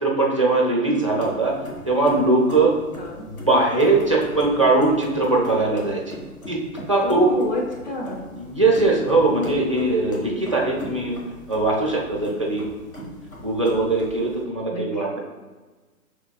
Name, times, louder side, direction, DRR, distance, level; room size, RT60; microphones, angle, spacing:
voice 1, 0.0-1.5 1.9-2.7 3.5-6.2 6.5-6.6 6.9-7.3 8.3-11.2 11.5-12.6 13.0-13.1 13.4-15.2, right 2 dB, 25° right, -2 dB, 0.3 m, -20 dB
sound 1, 1.0-14.4, left 1 dB, 70° left, 1.4 m, -39 dB
voice 2, 3.0-3.3 7.0-8.2 14.7-15.0, left 1 dB, 30° left, -2 dB, 0.7 m, -28 dB
5.9 x 3.4 x 2.2 m, 1.3 s
figure-of-eight pair, 125°, 44 cm